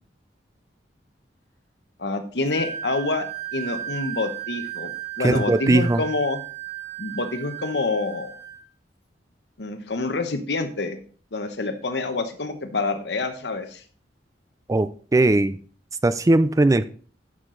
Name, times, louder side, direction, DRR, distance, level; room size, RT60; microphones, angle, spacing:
voice 1, 2.0-3.2 3.5-4.9 5.2-6.4 7.0-8.4 9.6-11.0 11.3-13.8, left 3 dB, 70° left, 7 dB, 1.0 m, -27 dB
Wind instrument woodwind instrument, 2.5-8.6, right 11 dB, 15° left, 1.4 m, -35 dB
voice 2, 5.2-6.0 14.7-15.6 16.0-16.9, right 2 dB, 20° right, 13 dB, 0.4 m, -19 dB
9.8 x 6.5 x 3.9 m, 0.42 s
head